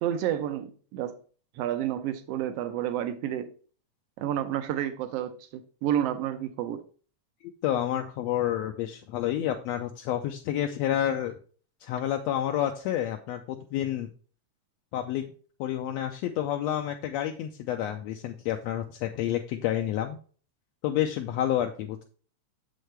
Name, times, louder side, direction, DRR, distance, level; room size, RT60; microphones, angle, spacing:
voice 1, 0.0-1.2 1.5-3.5 4.2-6.8, right 11 dB, 75° right, 1.5 m, -30 dB
voice 2, 7.4-11.3 11.8-14.1 14.9-15.3 15.6-20.2 20.8-22.0, left 11 dB, 80° left, 1.6 m, -29 dB
7.4 x 6.3 x 3.3 m
omnidirectional pair, 3.5 m